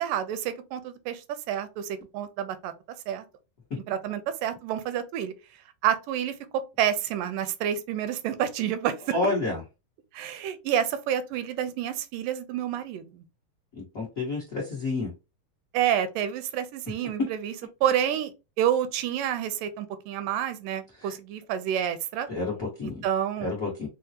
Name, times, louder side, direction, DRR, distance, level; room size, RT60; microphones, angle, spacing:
voice 1, 0.0-2.7 3.1-3.2 3.9-5.3 5.8-9.2 10.1-13.2 15.7-17.5 17.8-18.3 18.6-22.3 22.8-23.5, right 10 dB, 85° right, 2.1 m, -29 dB
voice 2, 9.1-9.6 13.7-15.1 22.3-23.0 23.4-23.9, left 3 dB, 85° left, 0.7 m, -29 dB
5.4 x 2.1 x 2.8 m
omnidirectional pair, 3.8 m